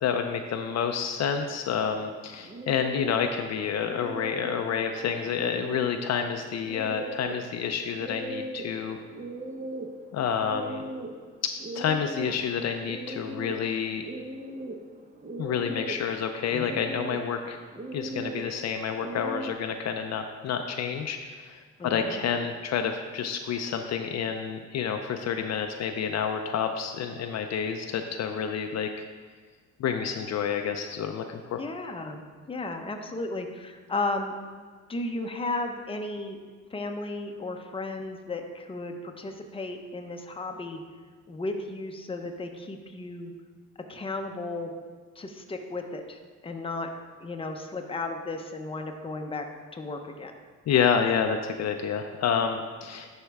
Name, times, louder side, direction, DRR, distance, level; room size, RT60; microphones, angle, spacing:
voice 1, 0.0-9.0 10.1-10.8 11.4-14.0 15.4-17.6 17.9-29.1 29.8-31.6 50.7-53.2, left 7 dB, 60° left, 6 dB, 0.5 m, -29 dB
sound 1, 2.0-19.5, right 2 dB, 25° right, 0.8 m, -40 dB
voice 2, 21.8-22.2 31.6-32.2 32.5-34.4 34.9-36.4 36.7-40.8 41.3-43.3 43.9-44.7 45.2-46.9 47.2-49.4 49.7-50.3, left 2 dB, 20° left, 4 dB, 0.8 m, -34 dB
11.0 x 4.4 x 3.5 m, 1.5 s
cardioid pair, 90°, 30 cm